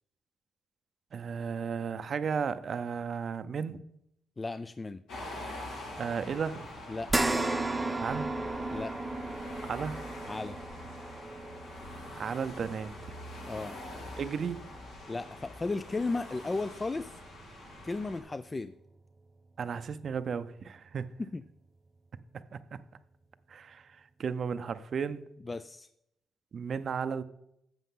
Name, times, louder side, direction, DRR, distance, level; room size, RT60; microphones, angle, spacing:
voice 1, 1.1-3.8 6.0-6.7 8.0-8.3 9.6-10.0 12.2-13.2 14.2-14.6 19.6-21.1 22.5-22.8 23.5-25.2 26.5-27.2, right 6 dB, 50° right, 0.5 m, -34 dB
voice 2, 4.4-5.0 6.9-7.3 8.7-9.0 10.3-10.6 13.5-13.7 15.1-17.2 17.8-18.7 21.2-21.4 25.5-25.9, left 3 dB, 25° left, 0.3 m, -35 dB
sound 1, 5.1-18.2, left 1 dB, 90° left, 3.8 m, -45 dB
sound 2, 7.1-15.7 16.1-16.3 17.7-17.8, right 2 dB, 20° right, 0.7 m, -35 dB
11.0 x 7.4 x 3.8 m
cardioid pair, 90°, 0 cm